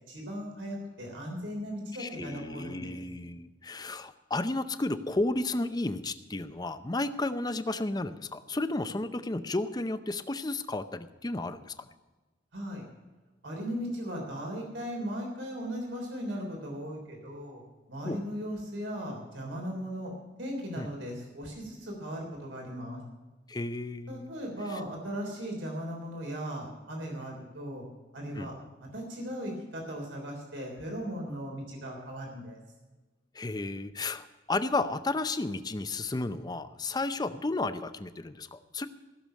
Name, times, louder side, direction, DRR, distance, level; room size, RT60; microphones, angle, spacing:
voice 1, 0.1-3.0 12.5-12.8 13.4-17.6 17.9-20.1 20.4-23.0 24.1-27.8 28.1-28.5 28.8-32.6, equal, 85° right, 0 dB, 3.5 m, -37 dB
voice 2, 2.0-11.7 18.0-18.2 20.8-20.9 23.5-24.3 28.4-28.5 33.3-38.9, left 2 dB, 20° left, 11 dB, 0.6 m, -33 dB
15.5 x 6.8 x 7.5 m, 1.2 s
head